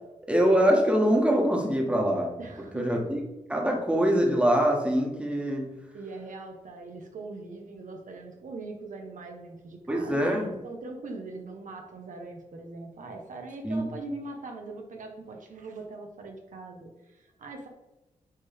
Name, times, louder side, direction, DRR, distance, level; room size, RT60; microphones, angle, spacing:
voice 1, 0.3-2.3 2.7-3.2 3.5-5.7 9.9-10.5 13.6-13.8, equal, 10° right, 0 dB, 1.5 m, -24 dB
voice 2, 2.4-3.1 3.7-3.8 5.9-17.7, right 3 dB, 80° right, 2 dB, 1.1 m, -41 dB
9.0 x 3.6 x 3.6 m, 1.0 s
wide cardioid pair, 85°, 13 cm